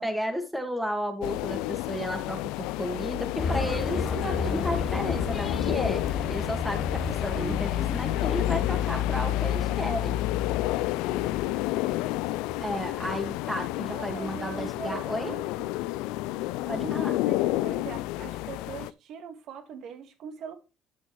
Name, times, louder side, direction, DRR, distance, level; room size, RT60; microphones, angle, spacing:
voice 1, 0.0-6.0 6.3-10.2 12.6-15.3 16.7-17.1, equal, 5° right, 2.0 m, -33 dB
sound 1, 1.2-18.9, left 16 dB, 80° left, 0.4 m, -30 dB
sound 2, 3.4-13.0, left 4 dB, 40° left, 1.2 m, -34 dB
voice 2, 7.3-7.6 13.9-15.7 16.6-20.5, right 7 dB, 65° right, 1.8 m, -41 dB
11.5 x 6.2 x 3.2 m
supercardioid pair, 80°, 0 cm